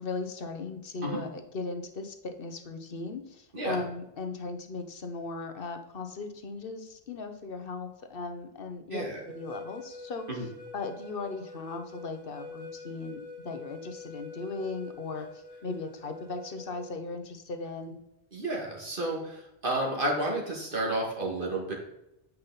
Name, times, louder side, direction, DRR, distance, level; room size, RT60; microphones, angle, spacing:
voice 1, 0.0-10.2 10.7-13.2 13.4-18.0, left 3 dB, 65° left, 7 dB, 1.1 m, -37 dB
voice 2, 8.9-9.2 10.3-10.5 18.3-21.7, right 1 dB, 60° right, -2 dB, 2.3 m, -31 dB
sound 1, 9.2-16.9, left 2 dB, 35° left, 1.9 m, -46 dB
8.3 x 5.8 x 4.0 m, 0.87 s
omnidirectional pair, 1.0 m